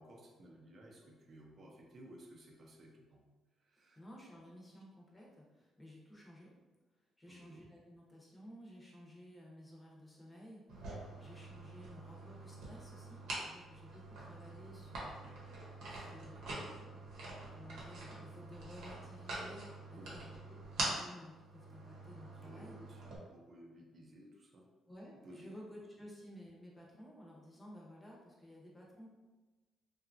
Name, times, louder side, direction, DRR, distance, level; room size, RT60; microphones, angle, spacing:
voice 1, 0.0-3.3 3.6-4.0 7.3-7.7 19.9-20.4 22.4-23.0 23.3-24.7 25.2-25.5 25.9-26.0, equal, 45° right, 0 dB, 0.5 m, -56 dB
voice 2, 4.0-6.5 7.0-17.2 17.5-20.3 20.9-22.8 24.9-29.1, equal, 15° left, -3 dB, 0.7 m, -55 dB
sound 1, 10.7-23.2, right 2 dB, 85° right, 0.8 m, -45 dB
2.8 x 2.3 x 2.5 m, 1.2 s
cardioid pair, 110°, 0 cm